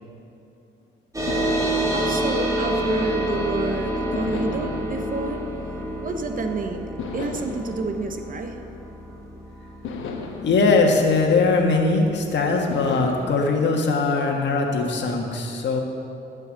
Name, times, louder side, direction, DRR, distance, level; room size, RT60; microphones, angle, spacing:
sound 1, 1.1-12.1, right 1 dB, 15° right, 1.9 m, -28 dB
sound 2, 1.3-3.5 4.1-6.4 7.0-9.2 9.8-12.1 12.7-15.0, left 4 dB, 85° left, 1.2 m, -37 dB
voice 1, 1.4-5.4 6.0-8.6, right 3 dB, 45° right, 6 dB, 1.0 m, -30 dB
voice 2, 10.4-15.8, left 3 dB, 65° left, 1 dB, 1.6 m, -20 dB
14.0 x 5.5 x 6.5 m, 2.8 s
cardioid pair, 90°, 20 cm